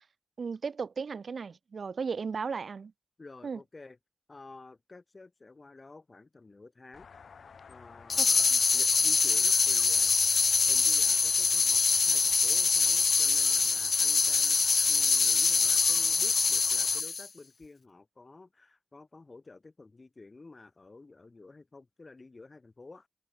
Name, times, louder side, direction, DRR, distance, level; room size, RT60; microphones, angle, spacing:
voice 1, 0.4-2.9 3.4-3.6 8.2-8.3 8.5-8.6, right 5 dB, 75° right, 1.0 m, -35 dB
voice 2, 3.2-4.0 4.3-7.1 7.7-10.1 10.6-14.6 14.9-23.1, left 3 dB, 40° left, 6.5 m, -51 dB
sound 1, 6.9-17.0, left 6 dB, 90° left, 3.0 m, -52 dB
sound 2, 8.1-17.3, left 4 dB, 65° left, 0.4 m, -24 dB
wide cardioid pair, 95°, 0 cm